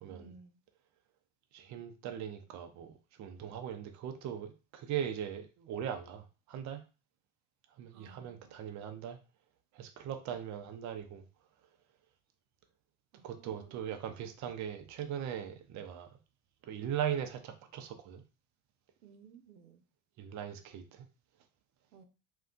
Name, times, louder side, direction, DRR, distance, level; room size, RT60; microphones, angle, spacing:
voice 1, 0.1-0.6 7.9-8.7 13.1-13.9 19.0-19.8 21.9-22.1, right 5 dB, 90° right, 0.7 m, -57 dB
voice 2, 1.5-6.8 7.8-9.2 9.7-11.2 13.2-16.1 16.6-18.2 20.2-21.0, right 9 dB, 40° right, 0.6 m, -39 dB
2.7 x 2.3 x 3.6 m
supercardioid pair, 100°, 43 cm